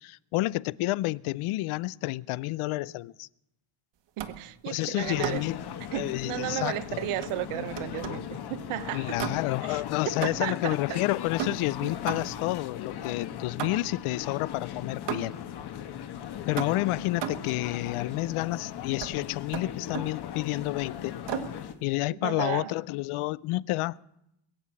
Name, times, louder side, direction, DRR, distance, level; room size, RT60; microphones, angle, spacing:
voice 1, 0.0-3.3 4.7-5.6 5.9-7.0 8.9-15.4 16.5-21.2 21.8-24.0, left 19 dB, 80° left, 0.6 m, -30 dB
sound 1, 4.2-4.5 5.2-5.6 7.2-8.3 9.2-9.7 10.2-10.7 11.4-12.5 13.6-14.1 15.1-15.5 16.6-17.6 19.0-19.2 19.5-20.2 21.3-21.6, right 8 dB, 60° right, 1.5 m, -36 dB
voice 2, 4.2-5.5 5.9-9.1 9.7-11.0 11.8-12.0 22.1-22.7, right 15 dB, 85° right, 1.0 m, -34 dB
sound 2, 5.0-21.7, left 9 dB, 50° left, 1.2 m, -38 dB
21.5 x 7.7 x 8.4 m
cardioid pair, 150°, 49 cm